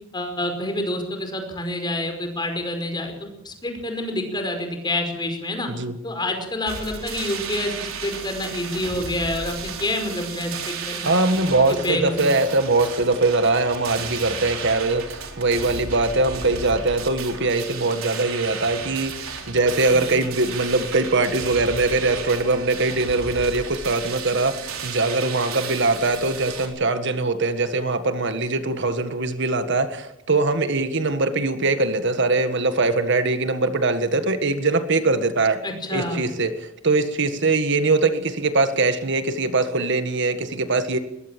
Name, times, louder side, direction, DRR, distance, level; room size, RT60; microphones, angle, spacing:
voice 1, 0.1-5.7 6.0-11.1 11.7-12.3 35.6-36.2, left 1 dB, 20° left, 5 dB, 5.2 m, -28 dB
sound 1, 6.7-26.7, right 5 dB, 85° right, 4.1 m, -34 dB
voice 2, 11.1-35.6 35.9-41.0, right 3 dB, 60° right, 9 dB, 1.7 m, -22 dB
21.0 x 21.0 x 7.4 m, 0.81 s
head